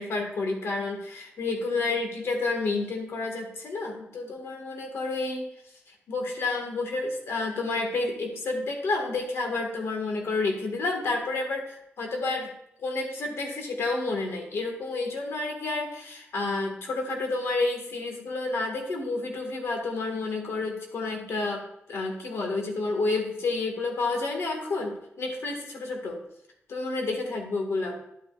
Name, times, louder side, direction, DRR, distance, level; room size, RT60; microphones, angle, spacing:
voice 1, 0.0-5.5 6.1-12.5 12.8-21.6 21.9-26.2 26.7-28.0, left 3 dB, 85° left, 2 dB, 1.7 m, -30 dB
10.5 x 8.5 x 2.4 m, 0.79 s
wide cardioid pair, 150°, 4 cm